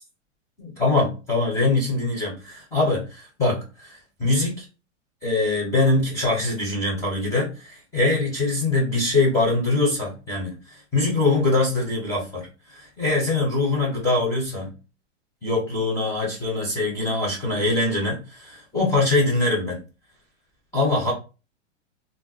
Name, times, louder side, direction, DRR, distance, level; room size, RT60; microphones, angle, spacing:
voice 1, 0.6-4.7 5.2-14.7 15.4-19.8 20.7-21.1, left 2 dB, 10° left, 0.5 m, -23 dB
2.4 x 2.1 x 3.7 m
hypercardioid pair, 155°, 37 cm